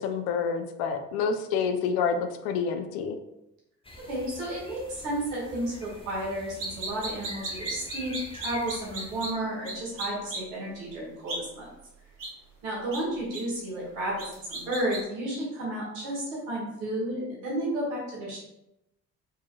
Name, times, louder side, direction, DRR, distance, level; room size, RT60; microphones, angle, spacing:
voice 1, 0.0-3.2, left 6 dB, 80° left, 7 dB, 0.5 m, -28 dB
sound 1, 3.8-9.3, left 1 dB, 15° left, 0.8 m, -45 dB
voice 2, 4.1-11.7 12.6-18.4, right 1 dB, 90° right, -4 dB, 1.3 m, -32 dB
sound 2, 6.6-9.3 9.6-9.7 10.0-10.4 11.3-11.4 12.2-12.3 12.9-13.0 13.3-13.4 14.2-15.0, right 3 dB, 55° right, 1.3 m, -34 dB
4.5 x 3.0 x 2.4 m, 0.87 s
hypercardioid pair, 50°, 38 cm